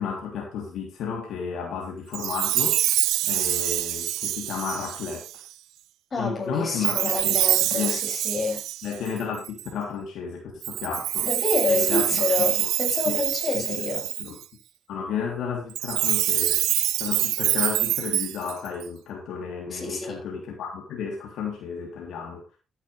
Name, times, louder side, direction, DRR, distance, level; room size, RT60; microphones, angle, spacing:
voice 1, 0.0-2.8 3.2-5.3 6.2-8.0 8.8-11.3 11.7-12.2 12.6-12.7 13.1-13.2 13.5-13.9 14.2-14.4 14.9-16.6 17.0-22.4, left 6 dB, 80° left, 3.3 m, -32 dB
Chime, 2.1-5.5 6.8-9.7 10.6-14.4 15.7-18.8, right 14 dB, 90° right, 0.6 m, -25 dB
voice 2, 6.1-8.6 11.2-14.1 19.7-20.2, left 3 dB, 40° left, 6.7 m, -28 dB
13.5 x 10.5 x 3.4 m
cardioid pair, 90°, 0 cm